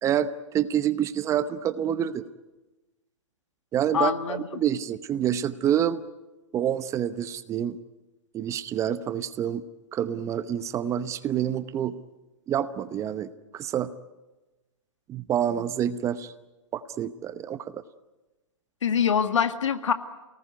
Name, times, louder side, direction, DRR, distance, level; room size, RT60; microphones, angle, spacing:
voice 1, 0.0-2.2 3.7-6.0 6.5-7.8 8.3-9.6 9.9-11.9 12.5-13.9 15.1-16.3 16.7-17.8, right 10 dB, 20° right, 14 dB, 0.8 m, -27 dB
voice 2, 3.9-4.4 18.8-19.9, left 7 dB, 75° left, 9 dB, 2.0 m, -24 dB
28.5 x 19.0 x 9.5 m, 1.1 s
hypercardioid pair, 135°, 16 cm